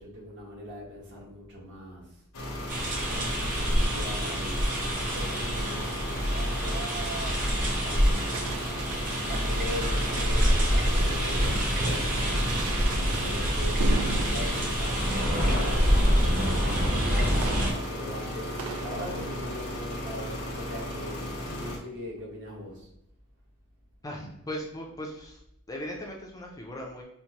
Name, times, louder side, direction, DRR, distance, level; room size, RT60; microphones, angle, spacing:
voice 1, 0.0-2.0 2.9-7.0 7.8-8.5 9.3-12.6 13.2-16.9 17.6-22.9, left 1 dB, 55° right, -3 dB, 1.2 m, -41 dB
sound 1, 2.3-21.8, left 1 dB, 80° left, 0.9 m, -36 dB
sound 2, 2.7-17.7, equal, 35° right, 0.9 m, -26 dB
sound 3, 5.1-19.6, right 5 dB, 70° right, 0.4 m, -39 dB
voice 2, 24.0-25.4 25.7-27.0, equal, 15° left, -1 dB, 0.5 m, -38 dB
4.4 x 2.1 x 2.8 m, 0.82 s
head